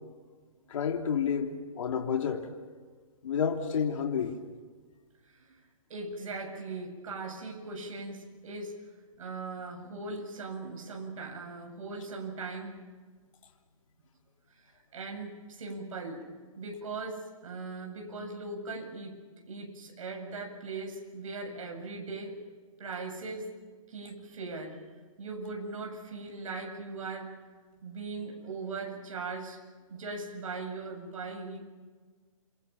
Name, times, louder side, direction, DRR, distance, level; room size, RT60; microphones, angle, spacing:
voice 1, 0.7-2.5 3.2-4.4, left 7 dB, 60° left, 2 dB, 3.2 m, -30 dB
voice 2, 5.9-8.8 9.2-12.8 14.5-16.3 16.6-22.4 22.8-23.5 23.9-24.8 25.2-27.4 27.8-29.6 29.9-31.6, right 3 dB, 65° right, 2 dB, 7.7 m, -39 dB
29.5 x 26.0 x 5.9 m, 1.5 s
hypercardioid pair, 155°, 18 cm